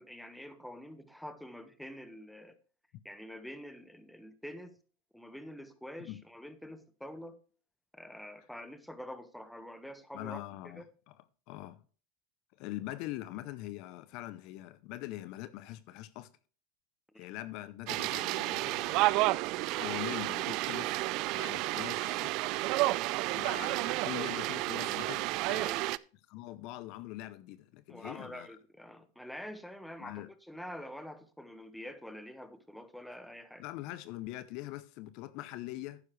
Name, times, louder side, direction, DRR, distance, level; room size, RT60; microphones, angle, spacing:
voice 1, 0.0-2.5 3.0-4.8 5.1-7.4 7.9-10.8 17.1-17.2 23.4-23.5 25.5-25.9 27.9-33.6, equal, ahead, 1.4 m, -46 dB
voice 2, 10.1-11.1 11.5-11.8 12.6-16.3 17.2-19.2 19.8-20.9 21.3-22.3 23.3-25.6 26.3-28.5 30.0-30.3 33.6-36.0, left 16 dB, 55° left, 0.7 m, -43 dB
sound 1, 17.9-26.0, right 19 dB, 55° right, 0.4 m, -31 dB
11.5 x 9.6 x 3.2 m
hypercardioid pair, 105°, 0 cm